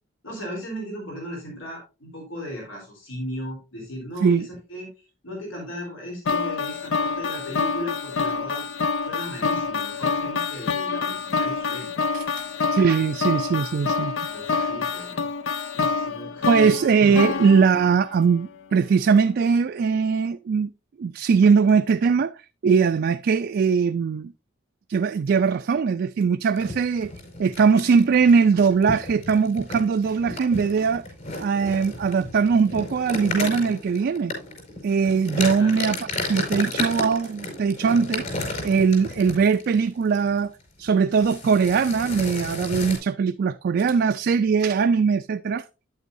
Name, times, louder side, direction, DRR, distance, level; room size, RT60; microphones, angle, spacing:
voice 1, 0.2-4.9 5.2-8.7 9.0-12.4 14.3-15.3 15.8-16.7 35.5-35.9, equal, 90° left, 3.6 m, -36 dB
sound 1, 6.3-18.4, left 4 dB, 70° left, 0.6 m, -27 dB
voice 2, 12.1-14.2 14.5-14.7 16.4-20.7 21.0-22.3 22.6-24.3 24.9-27.1 27.4-31.0 31.4-34.3 34.8-38.2 38.6-40.5 40.8-45.6, right 5 dB, 55° right, 0.3 m, -21 dB
sound 2, 26.6-39.8 40.2-40.4 40.6-40.9 41.2-43.0, left 2 dB, 40° left, 5.1 m, -33 dB
9.6 x 8.2 x 2.6 m
head